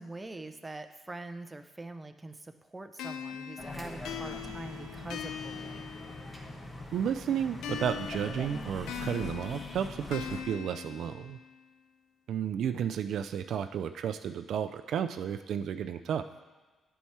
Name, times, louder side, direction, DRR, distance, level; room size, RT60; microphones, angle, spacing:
voice 1, 0.0-5.9, right 2 dB, 15° right, 8 dB, 0.5 m, -44 dB
sound 1, 3.0-6.6 7.6-11.6, left 9 dB, 85° left, 0.4 m, -41 dB
sound 2, 3.6-10.4, left 1 dB, 20° left, 1.1 m, -43 dB
voice 2, 6.9-11.4 12.3-16.2, right 8 dB, 70° right, 9 dB, 0.3 m, -32 dB
10.0 x 4.6 x 4.3 m, 1.2 s
cardioid pair, 90°, 0 cm